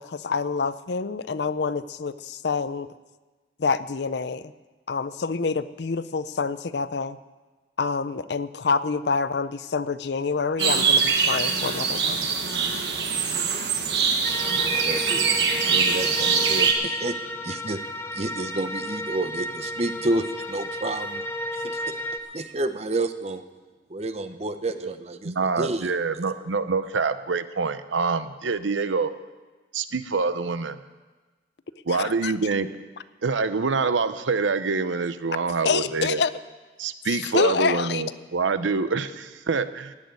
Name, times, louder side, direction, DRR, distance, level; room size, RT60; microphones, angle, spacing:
voice 1, 0.0-2.9 3.6-4.5 4.9-7.2 7.8-12.3 31.9-32.3 35.6-36.3 37.1-38.0, left 4 dB, 65° left, 15 dB, 0.5 m, -27 dB
sound 1, 10.6-16.7, right 5 dB, 60° right, 1.5 m, -23 dB
sound 2, 14.2-22.2, equal, 10° left, 0.7 m, -33 dB
voice 2, 14.7-15.3 15.6-17.1 17.4-17.8 18.1-21.2 21.5-21.9 22.3-23.4 23.9-25.9, right 2 dB, 35° right, 9 dB, 0.8 m, -30 dB
voice 3, 25.2-29.1 29.7-30.8 31.8-32.7 33.2-36.2 36.8-39.9, right 4 dB, 85° right, 12 dB, 0.7 m, -26 dB
17.0 x 6.4 x 9.5 m, 1.3 s
head